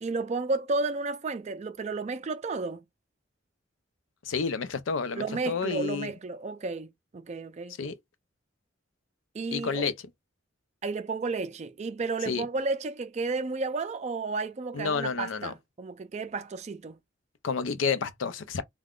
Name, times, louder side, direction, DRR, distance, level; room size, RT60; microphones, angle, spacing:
voice 1, 0.0-2.8 5.2-7.8 9.3-9.8 10.8-17.0, right 3 dB, 35° right, 0.4 m, -32 dB
voice 2, 4.2-6.1 7.8-7.9 9.5-9.9 12.3-12.5 14.7-15.5 17.4-18.6, left 5 dB, 85° left, 0.5 m, -30 dB
2.4 x 2.2 x 3.5 m
head